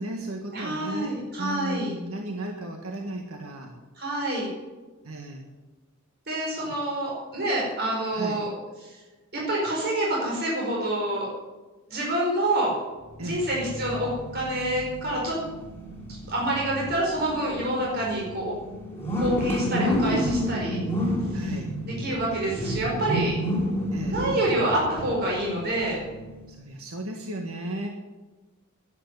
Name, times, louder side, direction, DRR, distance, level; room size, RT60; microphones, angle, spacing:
voice 1, 0.0-3.7 5.0-5.4 6.4-6.7 8.1-8.4 13.2-13.5 21.3-21.7 23.9-24.2 26.5-27.9, right 1 dB, 85° right, 2 dB, 1.7 m, -35 dB
voice 2, 0.5-1.9 4.0-4.5 6.3-8.5 8.8-9.0 9.3-11.3 11.9-12.7 13.2-15.4 16.3-18.5 19.2-20.8 22.0-23.3 24.1-26.0, right 1 dB, 50° right, -3 dB, 4.9 m, -27 dB
Supercar rev, 13.1-26.5, equal, 10° left, 6.3 m, -31 dB
11.0 x 11.0 x 9.6 m, 1.2 s
head